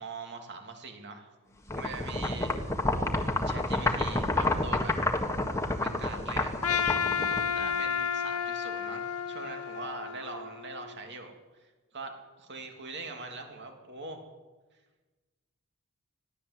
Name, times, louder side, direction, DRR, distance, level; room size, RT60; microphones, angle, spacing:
voice 1, 0.0-1.3 1.8-2.5 3.4-5.0 5.8-6.5 7.5-14.2, right 3 dB, 50° right, 4 dB, 3.0 m, -42 dB
sound 1, 1.7-7.8, left 2 dB, 15° left, 1.6 m, -29 dB
Trumpet, 6.6-10.9, left 7 dB, 80° left, 1.8 m, -31 dB
21.0 x 15.5 x 8.2 m, 1.2 s
head